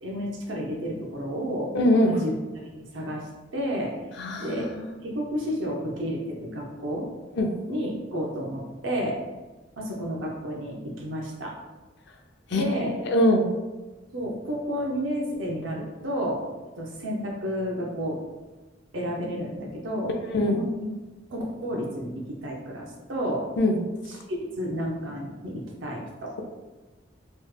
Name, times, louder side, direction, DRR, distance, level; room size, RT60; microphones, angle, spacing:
voice 1, 0.0-1.8 2.0-3.9 4.4-4.7 5.0-7.1 7.7-9.2 9.8-11.5 12.5-12.9 14.1-16.4 16.8-18.2 18.9-20.1 20.4-20.9 21.3-23.4 24.1-26.3, equal, 90° right, -1 dB, 0.7 m, -31 dB
voice 2, 1.7-2.1 4.2-4.6 7.4-7.5 12.5-13.4 20.3-20.6 23.6-23.8, left 1 dB, 65° left, 3 dB, 0.4 m, -22 dB
3.1 x 2.1 x 3.2 m, 1.2 s
head